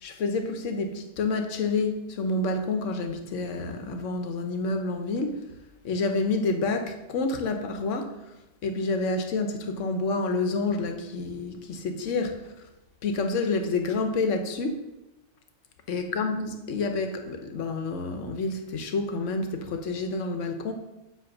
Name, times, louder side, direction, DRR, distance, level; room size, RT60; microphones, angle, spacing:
voice 1, 0.0-5.4 5.8-8.1 8.6-12.4 13.0-14.8 15.9-20.7, left 3 dB, 85° left, 5 dB, 1.1 m, -28 dB
7.6 x 3.0 x 6.0 m, 1.0 s
omnidirectional pair, 1.2 m